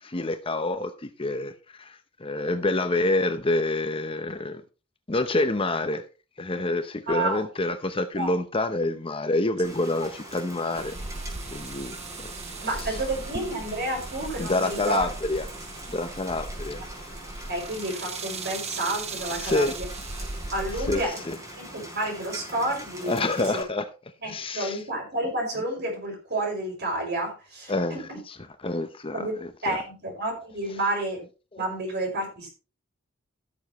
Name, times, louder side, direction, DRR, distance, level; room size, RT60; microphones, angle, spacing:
voice 1, 0.0-4.6 5.1-6.0 6.4-11.0 11.5-12.3 12.9-13.0 14.4-15.5 15.9-16.8 19.4-19.7 20.9-21.4 23.1-23.8 24.2-24.8 27.7-28.4 28.6-29.3 29.7-29.8 31.5-31.6, left 2 dB, 25° left, 0.7 m, -27 dB
voice 2, 7.1-7.4 8.1-8.3 12.6-15.1 17.5-19.9 20.5-21.1 21.6-23.1 23.5-23.6 24.2-28.2 29.1-29.3 29.6-31.2 31.6-32.5, right 1 dB, 50° right, 5.3 m, -30 dB
Rain, 9.6-23.6, right 1 dB, 15° right, 4.3 m, -42 dB
sound 1, 10.8-21.0, right 3 dB, 30° right, 1.0 m, -38 dB
16.0 x 7.1 x 3.1 m
head